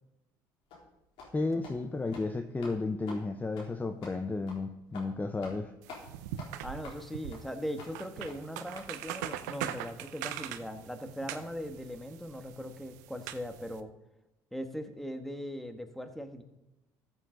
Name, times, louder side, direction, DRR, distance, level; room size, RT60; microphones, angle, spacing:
sound 1, 0.7-0.8 1.2-1.3 1.6-1.8 2.1-2.3 2.6-2.8 3.1-3.2 3.6-3.7 4.0-4.2 4.5-4.6 4.9-5.1 5.4-5.6 5.9-6.0 6.4-6.5 6.8-7.0 7.3-7.4 7.8-7.9 8.3-8.4 8.7-8.9 9.2-9.3 9.7-9.8, left 3 dB, 70° left, 3.3 m, -47 dB
voice 1, 1.3-5.7, left 3 dB, 20° left, 8 dB, 0.7 m, -33 dB
sound 2, 5.8-13.8, right 12 dB, 90° right, 0.6 m, -42 dB
voice 2, 6.6-13.9 14.5-16.4, equal, ahead, 7 dB, 1.4 m, -40 dB
14.0 x 7.4 x 3.9 m, 0.97 s
supercardioid pair, 75°, 9 cm